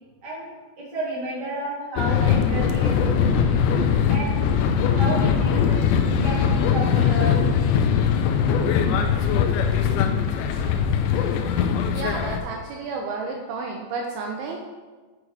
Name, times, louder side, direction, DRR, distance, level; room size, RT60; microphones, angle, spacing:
voice 1, 0.8-3.6 4.1-4.4 4.8-7.3 8.7-8.8, right 1 dB, 30° right, -6 dB, 2.5 m, -32 dB
sound 1, 2.0-12.4, left 7 dB, 90° left, 2.9 m, -21 dB
voice 2, 11.9-14.6, right 4 dB, 80° right, 0 dB, 2.5 m, -31 dB
8.5 x 6.1 x 4.9 m, 1.3 s
omnidirectional pair, 5.0 m